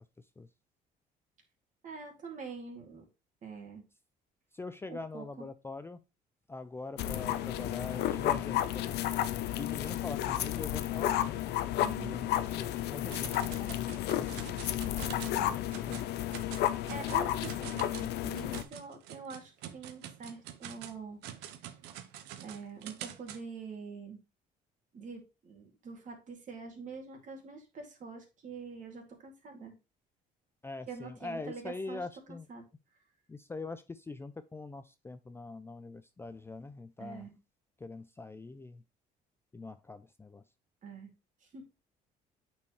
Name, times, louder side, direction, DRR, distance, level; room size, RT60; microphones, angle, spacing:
voice 1, 1.8-3.1 3.4-3.8 4.9-5.4 11.8-12.2 15.3-15.6 16.9-21.2 22.4-24.2 24.9-29.8 30.9-32.1 32.5-32.6 37.0-37.3 40.8-41.1 41.5-41.6, right 5 dB, 50° right, 2 dB, 2.3 m, -45 dB
voice 2, 4.5-6.0 6.5-9.1 9.6-11.4 12.0-15.1 15.9-16.1 30.6-32.5 33.3-37.3 37.8-38.8 39.5-40.4, left 3 dB, 15° left, 11 dB, 0.4 m, -43 dB
sound 1, 7.0-18.6, left 12 dB, 80° left, 0.6 m, -32 dB
sound 2, 13.1-15.4 15.7-16.1 16.3-23.4, right 10 dB, 90° right, 0.8 m, -46 dB
8.5 x 4.5 x 3.1 m, 0.28 s
cardioid pair, 110°, 17 cm